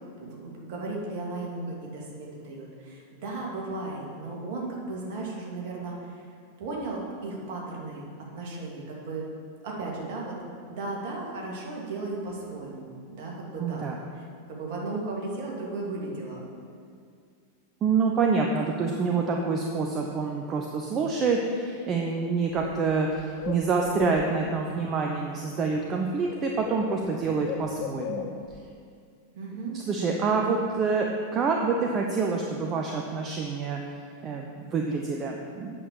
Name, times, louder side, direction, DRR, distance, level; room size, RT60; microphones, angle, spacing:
voice 1, 0.2-6.3 6.6-8.1 8.3-9.3 9.6-10.4 10.7-13.8 14.2-16.4 29.3-29.8, right 3 dB, 45° right, -3 dB, 2.5 m, -35 dB
voice 2, 13.6-14.0 17.8-28.3 29.7-31.1 31.3-33.8 34.2-35.8, right 4 dB, 30° right, 2 dB, 0.8 m, -27 dB
Bird, 21.8-21.9 22.2-24.7 25.7-26.0 26.2-28.7, left 10 dB, 40° left, 0.5 m, -37 dB
8.5 x 6.5 x 7.2 m, 2.2 s
figure-of-eight pair, 90°, 0 cm